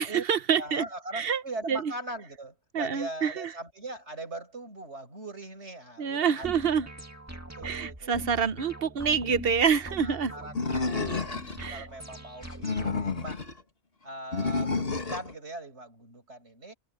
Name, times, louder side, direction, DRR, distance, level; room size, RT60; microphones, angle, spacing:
voice 1, 0.0-0.8 1.1-1.4 1.7-1.9 2.7-3.5 6.0-6.9 7.6-10.3 11.6-11.9, right 7 dB, 60° right, 1.1 m, -27 dB
voice 2, 0.6-6.6 7.3-8.3 10.0-10.5 10.9-13.5 14.0-16.7, right 2 dB, 85° right, 6.9 m, -40 dB
sound 1, 6.4-13.3, right 1 dB, 15° right, 2.2 m, -43 dB
Animal, 10.6-11.7 12.4-13.5 14.3-15.3, left 4 dB, 60° left, 2.5 m, -30 dB
omnidirectional pair, 1.1 m